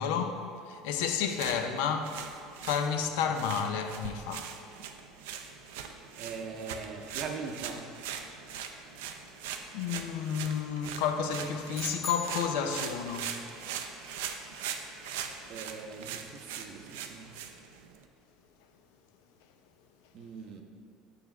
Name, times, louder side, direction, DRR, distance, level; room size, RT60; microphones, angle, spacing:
voice 1, 0.0-2.2 2.6-4.5 9.7-13.4, left 7 dB, 80° left, 0.5 m, -31 dB
sound 1, 1.3-18.0, right 8 dB, 90° right, 0.4 m, -41 dB
voice 2, 6.2-8.0 15.5-17.4 20.1-20.6, right 5 dB, 50° right, 0.6 m, -41 dB
sound 2, 11.7-13.2, left 6 dB, 20° left, 0.6 m, -40 dB
6.4 x 3.4 x 5.8 m
supercardioid pair, 125°, 0 cm